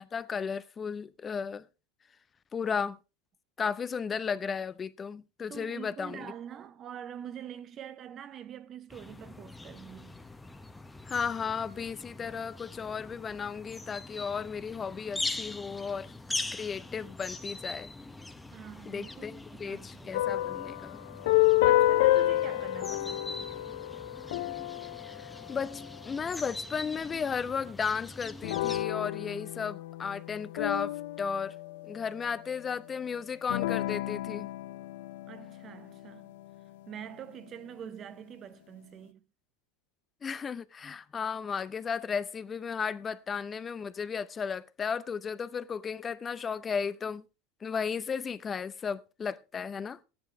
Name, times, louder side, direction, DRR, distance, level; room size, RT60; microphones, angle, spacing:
voice 1, 0.0-1.7 2.5-3.0 3.6-6.3 11.1-16.1 16.5-17.9 18.9-21.0 25.1-31.5 31.8-34.5 40.2-47.2 47.6-50.0, left 6 dB, 25° left, 0.6 m, -34 dB
voice 2, 5.5-10.2 18.5-20.3 21.3-23.5 35.3-36.3 36.9-39.2, right 9 dB, 40° right, 0.9 m, -45 dB
early city birds, 8.9-28.8, left 2 dB, 10° left, 1.0 m, -42 dB
sound 1, 20.1-26.1 28.4-32.2 33.5-36.2, left 16 dB, 70° left, 0.5 m, -29 dB
13.5 x 10.5 x 3.6 m
hypercardioid pair, 95°, 0 cm